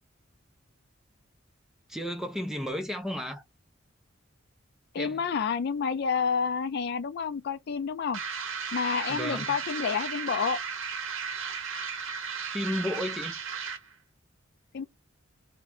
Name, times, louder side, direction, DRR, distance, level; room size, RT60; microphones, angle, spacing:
voice 1, 1.9-3.4 5.0-5.3 9.1-9.6 12.4-13.3, left 1 dB, ahead, 0.5 m, -33 dB
voice 2, 4.9-8.2 8.7-10.6 14.7-14.8, left 6 dB, 55° left, 0.4 m, -29 dB
sound 1, 8.1-13.9, right 6 dB, 80° right, 0.7 m, -35 dB
2.5 x 2.2 x 2.9 m
head